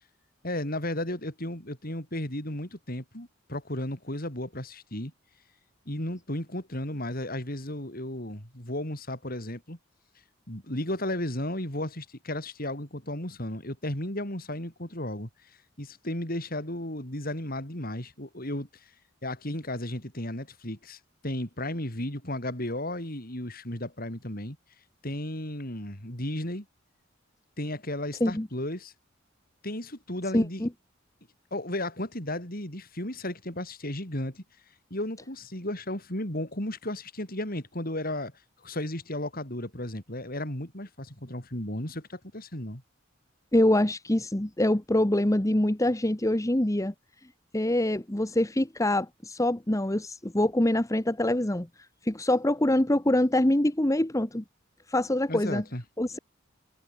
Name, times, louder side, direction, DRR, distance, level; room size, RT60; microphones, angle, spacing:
voice 1, 0.4-5.1 5.8-9.8 10.5-15.5 15.8-18.9 19.2-24.6 25.0-26.6 27.6-28.9 29.6-30.6 31.5-34.4 34.9-38.3 38.6-42.8 55.3-55.8, left 1 dB, 50° left, 6.7 m, -34 dB
voice 2, 30.3-30.7 43.5-46.9 47.5-51.7 52.0-54.4 54.9-55.6 56.0-56.2, left 1 dB, 15° left, 1.1 m, -25 dB
head